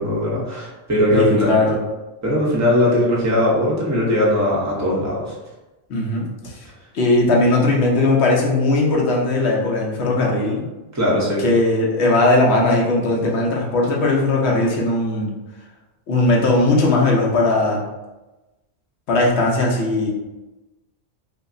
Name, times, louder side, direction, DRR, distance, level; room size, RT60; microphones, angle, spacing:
voice 1, 0.0-1.7 2.2-5.3 10.9-11.4, left 1 dB, 15° right, -5 dB, 0.7 m, -19 dB
voice 2, 1.1-1.8 5.9-6.6 6.9-10.6 11.4-15.4 16.1-17.8 19.1-20.1, left 2 dB, 60° left, -2 dB, 1.0 m, -18 dB
5.6 x 2.0 x 2.6 m, 1.1 s
omnidirectional pair, 1.3 m